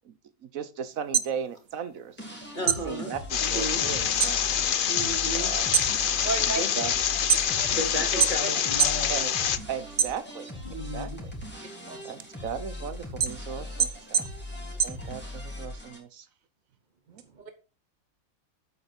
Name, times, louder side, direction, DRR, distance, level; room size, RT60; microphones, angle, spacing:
voice 1, 0.0-2.2 2.6-4.5 5.3-5.7 6.2-6.9 8.0-8.1 9.1-9.3 9.7-10.5 10.9-11.3 12.0-14.3 14.8-16.3 17.1-17.2, right 7 dB, 70° right, 13 dB, 1.4 m, -37 dB
sound 1, 0.9-2.3 2.6-4.4 4.8-5.2 5.6-7.8 8.2-9.1 9.4-10.6 11.1-15.6, right 8 dB, 55° right, 0.8 m, -27 dB
sound 2, 2.2-16.0, left 1 dB, 5° left, 3.0 m, -40 dB
voice 2, 2.5-3.1 3.5-3.9 4.9-5.5 6.6-6.9 7.8-9.1 10.6-11.2, right 1 dB, 35° left, 2 dB, 2.9 m, -34 dB
sound 3, 3.3-9.6, left 9 dB, 55° left, 0.6 m, -26 dB
voice 3, 6.2-6.7 7.5-7.8 8.2-8.5 11.9-12.0 17.4-17.5, right 4 dB, 35° right, 8 dB, 1.1 m, -33 dB
8.6 x 8.1 x 4.3 m, 0.32 s
omnidirectional pair, 1.5 m